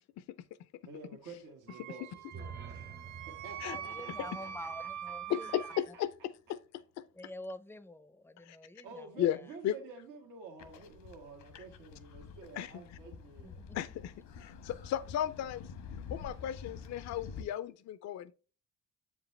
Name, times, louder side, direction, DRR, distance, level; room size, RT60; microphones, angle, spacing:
voice 1, 0.9-3.0 3.4-6.0 8.8-13.6, right 4 dB, 85° right, 1.3 m, -50 dB
Wind instrument woodwind instrument, 1.7-5.8, right 9 dB, 70° right, 0.7 m, -43 dB
sound 1, 2.1-6.2, right 5 dB, 35° right, 0.7 m, -50 dB
voice 2, 3.7-5.5 7.1-9.4 13.4-13.8, left 1 dB, 10° left, 0.5 m, -47 dB
voice 3, 5.3-6.1 6.5-6.6 7.0-7.1 8.4-8.6 9.2-9.4 9.6-9.7 12.6-12.7 13.7-15.7 16.1-18.3, left 11 dB, 65° left, 0.4 m, -35 dB
sound 2, 10.6-17.4, left 6 dB, 90° left, 1.1 m, -48 dB
7.2 x 5.0 x 3.1 m
cardioid pair, 90°, 30 cm